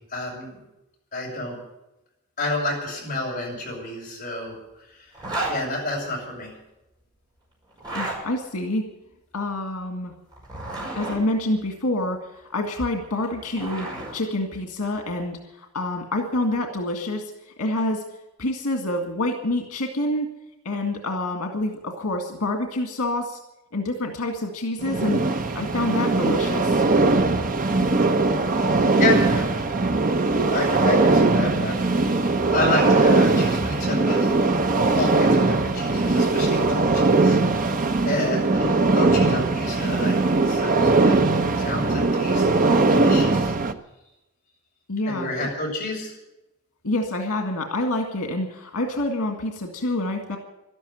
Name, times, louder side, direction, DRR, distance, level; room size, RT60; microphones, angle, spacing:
voice 1, 0.1-0.6 1.1-1.6 2.4-4.5 4.9-5.1 5.5-6.5 28.9-29.5 29.9-30.1 30.5-31.8 32.1-34.3 35.0-37.8 38.0-41.2 41.5-42.5 42.9-43.5 45.1-46.1, left 2 dB, 35° left, -3 dB, 7.0 m, -29 dB
Zipper (clothing), 5.1-5.6 7.7-8.2 10.3-11.2 13.0-14.1, right 2 dB, 20° right, 5.6 m, -31 dB
voice 2, 7.9-8.8 9.3-10.1 11.0-18.0 18.4-20.3 20.7-23.4 23.7-25.2 25.6-26.9 44.9-45.3 46.8-50.4, left 1 dB, 90° left, 3 dB, 1.9 m, -27 dB
sound 1, 24.8-43.7, right 3 dB, 35° right, 0.8 m, -20 dB
12.5 x 12.0 x 9.3 m, 0.93 s
head